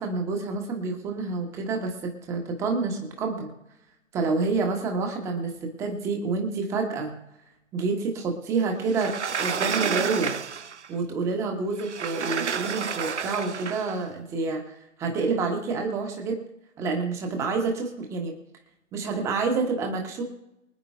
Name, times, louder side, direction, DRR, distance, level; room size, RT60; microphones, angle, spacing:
voice 1, 0.0-3.5 4.1-7.1 7.7-10.3 10.9-16.4 16.8-18.3 18.9-20.2, right 4 dB, 5° right, 3 dB, 1.2 m, -28 dB
Sliding door, 8.9-10.9 11.8-14.0, right 6 dB, 60° right, 0.7 m, -30 dB
24.5 x 9.6 x 2.4 m, 0.87 s
figure-of-eight pair, 140°, 39 cm